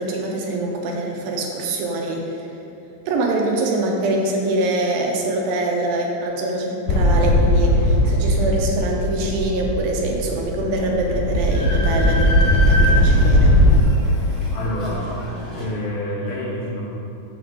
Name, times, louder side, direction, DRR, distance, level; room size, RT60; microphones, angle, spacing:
voice 1, 0.0-2.5 3.1-13.6, right 2 dB, 80° right, 0 dB, 2.4 m, -24 dB
sound 1, 6.9-13.8, left 1 dB, 85° left, 2.4 m, -18 dB
Train, 11.1-15.6, left 1 dB, 45° left, 1.0 m, -29 dB
voice 2, 14.5-17.0, left 1 dB, 70° left, -6 dB, 2.5 m, -28 dB
7.0 x 3.6 x 6.3 m, 2.9 s
omnidirectional pair, 4.4 m